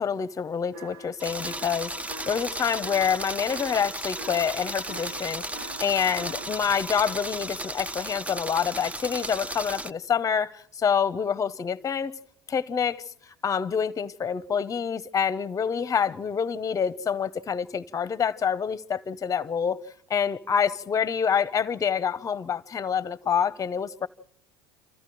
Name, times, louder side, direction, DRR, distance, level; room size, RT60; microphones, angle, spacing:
voice 1, 0.0-12.1 12.5-19.8 20.1-24.1, left 7 dB, 30° left, 0.9 m, -27 dB
sound 1, 0.7-1.2 1.4-2.5 2.8-6.5, right 1 dB, 85° right, 1.5 m, -44 dB
sound 2, 1.2-9.9, right 1 dB, 10° right, 0.8 m, -35 dB
28.0 x 14.0 x 7.7 m
hypercardioid pair, 80°, 11 cm